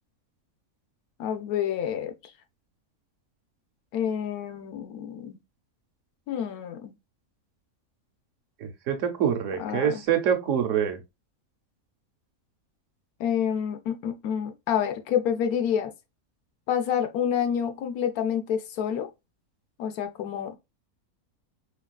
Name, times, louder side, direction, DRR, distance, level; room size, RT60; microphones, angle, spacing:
voice 1, 1.2-2.1 3.9-5.4 6.3-6.9 9.6-10.0 13.2-15.9 16.7-19.1 19.8-20.6, left 8 dB, 80° left, 1.1 m, -28 dB
voice 2, 8.6-11.0, right 8 dB, 65° right, 1.0 m, -25 dB
4.7 x 2.3 x 2.3 m
omnidirectional pair, 1.5 m